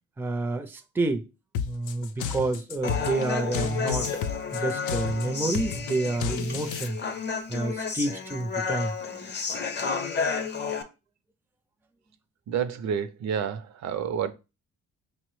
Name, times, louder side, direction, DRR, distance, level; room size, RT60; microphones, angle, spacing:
voice 1, 0.2-1.2 1.6-4.1 4.5-7.0 7.5-9.0, right 2 dB, 5° right, 0.4 m, -29 dB
sound 1, 1.5-6.9, left 7 dB, 80° left, 0.5 m, -33 dB
Human voice, 2.8-10.8, left 5 dB, 35° left, 0.6 m, -31 dB
voice 2, 12.5-14.3, right 8 dB, 65° right, 0.5 m, -29 dB
5.3 x 2.0 x 3.1 m
cardioid pair, 90°, 30 cm